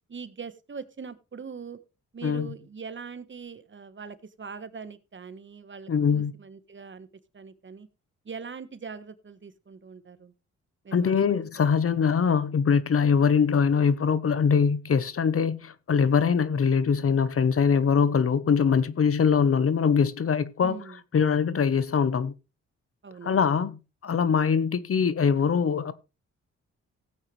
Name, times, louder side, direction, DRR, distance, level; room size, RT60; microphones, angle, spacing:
voice 1, 0.1-1.8 2.1-7.1 7.3-7.9 8.2-10.3 10.8-11.8 20.6-21.0 23.0-23.4, right 5 dB, 40° right, 1.4 m, -42 dB
voice 2, 2.2-2.5 5.9-6.3 10.9-20.8 21.1-22.3 23.2-25.9, left 6 dB, 50° left, 1.0 m, -23 dB
16.5 x 8.7 x 3.3 m
cardioid pair, 70°, 29 cm